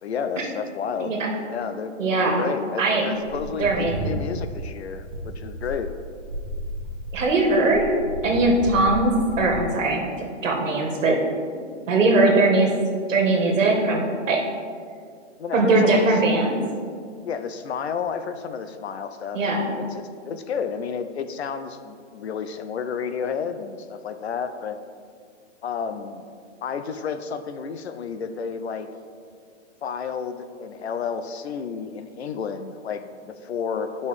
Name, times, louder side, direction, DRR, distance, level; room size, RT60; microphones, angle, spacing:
voice 1, 0.0-1.1 1.5-1.9 2.2-5.9 15.4-16.2 17.2-24.8 25.6-26.3 26.6-28.9 29.8-34.1, left 6 dB, 60° left, 9 dB, 0.5 m, -31 dB
voice 2, 2.0-2.5 2.8-3.0 3.6-4.2 7.1-7.9 8.2-11.2 11.9-12.7 13.1-14.4 15.5-16.6 19.3-19.6, right 2 dB, 80° right, 0 dB, 1.6 m, -20 dB
sound 1, 3.2-9.6, equal, 30° right, 1.0 m, -33 dB
8.7 x 5.3 x 3.2 m, 2.1 s
hypercardioid pair, 170°, 37 cm